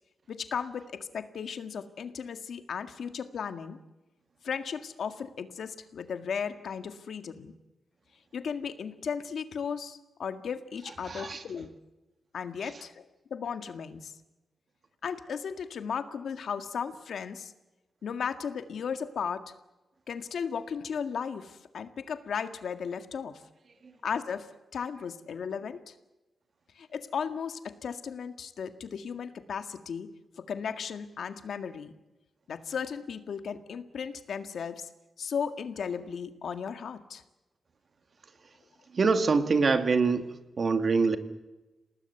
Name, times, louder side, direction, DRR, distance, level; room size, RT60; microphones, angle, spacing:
voice 1, 0.3-3.8 4.4-7.5 8.3-11.7 12.3-13.1 13.3-14.1 15.0-17.5 18.0-19.5 20.1-23.4 24.0-25.9 26.8-30.1 30.4-31.9 32.5-34.9 35.2-37.2, left 6 dB, 80° left, 9 dB, 1.9 m, -35 dB
voice 2, 11.0-11.4 23.8-23.9 38.9-40.3 40.6-41.2, right 4 dB, 50° right, 9 dB, 2.1 m, -24 dB
28.0 x 19.0 x 8.2 m, 1.1 s
wide cardioid pair, 100°, 0 cm